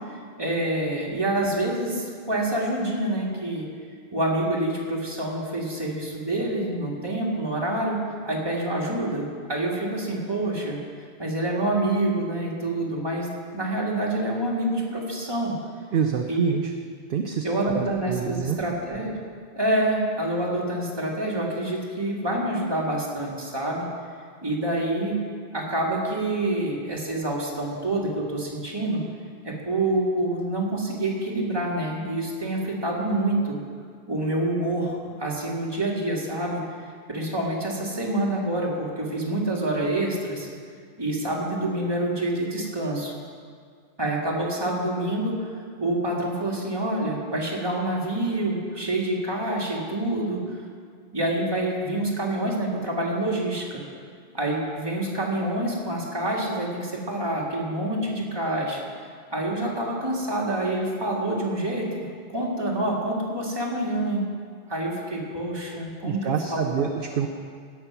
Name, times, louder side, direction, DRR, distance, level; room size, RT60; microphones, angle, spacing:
voice 1, 0.0-3.7 4.1-10.8 11.2-13.3 13.5-15.5 16.3-16.5 17.4-19.2 19.6-23.9 24.4-25.2 25.5-29.0 29.4-33.6 34.1-36.6 37.1-40.5 41.0-43.1 44.0-45.5 45.8-50.6 51.1-53.8 54.3-58.8 59.3-62.0 62.3-64.3 64.7-66.9, right 1 dB, 20° right, -3 dB, 1.9 m, -27 dB
voice 2, 15.9-16.7 17.1-18.6 66.0-67.3, right 7 dB, 60° right, 5 dB, 0.8 m, -27 dB
17.0 x 6.0 x 5.9 m, 2.1 s
omnidirectional pair, 1.1 m